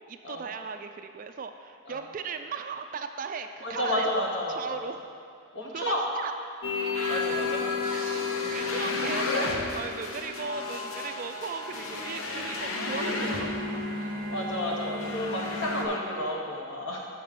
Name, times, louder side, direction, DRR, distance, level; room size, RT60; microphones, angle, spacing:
voice 1, 0.1-5.0 5.7-6.3 7.0-7.1 7.9-13.8, right 5 dB, 40° right, 7 dB, 0.3 m, -37 dB
voice 2, 3.6-4.8 5.5-6.0 7.1-7.6 14.0-17.1, left 1 dB, 60° left, -1 dB, 1.1 m, -31 dB
sound 1, 6.6-15.8, left 3 dB, 85° left, 0.8 m, -31 dB
6.1 x 5.4 x 6.7 m, 2.3 s
head